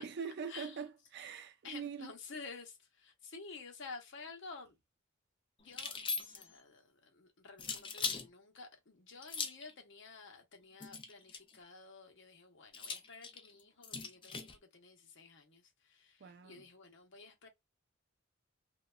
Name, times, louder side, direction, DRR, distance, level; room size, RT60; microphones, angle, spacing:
voice 1, 0.0-2.1 16.2-16.6, right 6 dB, 55° right, 0.4 m, -43 dB
voice 2, 1.6-4.8 5.6-17.5, left 4 dB, 65° left, 0.8 m, -52 dB
sound 1, 5.7-6.6 7.6-8.3 9.2-9.7 10.8-11.6 12.7-14.6, left 5 dB, 25° left, 0.4 m, -40 dB
2.9 x 2.2 x 2.2 m
head